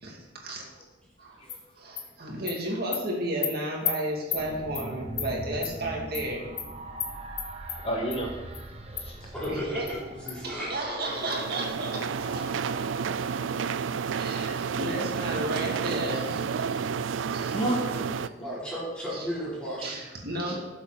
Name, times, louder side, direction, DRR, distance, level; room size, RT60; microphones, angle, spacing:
voice 1, 0.0-0.6 1.2-1.4 1.8-6.5 9.5-9.9 10.4-12.5 14.1-17.6 19.1-19.3 19.8-20.6, right 1 dB, 50° right, -1 dB, 2.4 m, -33 dB
Animal, 1.5-1.6 2.0-2.1 2.5-2.6 2.9-3.0 3.4-3.5 3.8-3.9 4.3-4.4 4.7-4.9 5.2-5.3 5.6-5.7 6.1-6.3 6.6-6.7 7.0-7.1 7.4-7.8 8.1-8.2 8.5-8.6 9.0-9.1 9.4-9.5 9.9-10.0 10.3-10.4, left 8 dB, 50° left, 1.3 m, -31 dB
sound 1, 4.4-14.7, right 1 dB, 30° right, 0.9 m, -42 dB
voice 2, 7.8-8.3 9.0-9.2 17.5-18.1 18.4-18.6, right 1 dB, 30° left, 0 dB, 1.4 m, -31 dB
voice 3, 9.2-11.4 18.4-20.0, equal, 5° left, -8 dB, 3.4 m, -35 dB
sound 2, 11.0-18.3, right 6 dB, 80° right, 0.4 m, -31 dB
12.5 x 7.5 x 4.1 m, 1.1 s
head